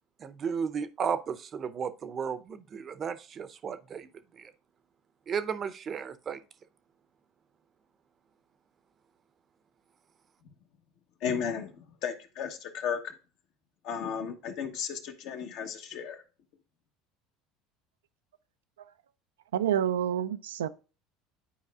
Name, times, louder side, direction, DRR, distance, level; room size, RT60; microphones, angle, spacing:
voice 1, 0.2-4.1 4.4-4.5 5.3-6.4, right 6 dB, 40° right, 0.6 m, -34 dB
voice 2, 11.2-13.1 13.8-16.2, left 7 dB, 65° left, 1.0 m, -34 dB
voice 3, 19.5-20.7, right 10 dB, 90° right, 0.3 m, -28 dB
10.0 x 4.6 x 2.4 m
hypercardioid pair, 80°, 0 cm